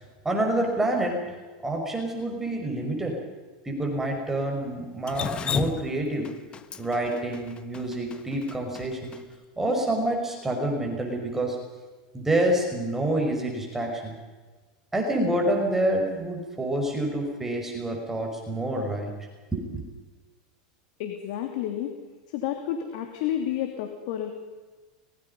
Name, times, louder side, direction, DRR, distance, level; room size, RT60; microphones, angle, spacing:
voice 1, 0.2-1.2 1.6-3.2 3.6-6.3 6.8-9.1 9.6-11.6 12.1-14.2 14.9-19.1 19.5-19.8, right 1 dB, 10° right, 1 dB, 5.1 m, -27 dB
Drip, 5.1-9.2, left 7 dB, 25° left, 1.3 m, -32 dB
voice 2, 21.0-21.9 22.3-24.4, left 10 dB, 65° left, 5 dB, 3.0 m, -30 dB
24.5 x 21.5 x 5.5 m, 1.3 s
supercardioid pair, 125°, 4 cm